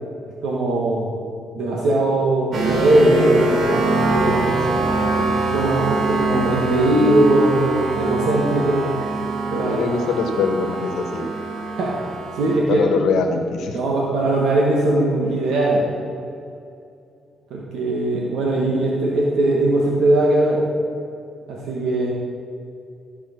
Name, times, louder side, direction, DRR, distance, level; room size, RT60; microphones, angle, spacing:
voice 1, 0.4-1.1 1.5-3.5 4.0-4.6 5.5-8.9 9.5-9.8 11.8-11.9 12.3-12.8 13.7-15.8 17.5-20.6 21.5-22.1, right 1 dB, 80° right, -3 dB, 1.7 m, -19 dB
sound 1, 2.5-12.6, right 2 dB, 60° right, 1.5 m, -23 dB
voice 2, 4.5-5.6 9.5-11.2 12.7-13.8, left 5 dB, 75° left, 5 dB, 1.5 m, -24 dB
14.5 x 5.1 x 6.7 m, 2.6 s
cardioid pair, 90°, 0 cm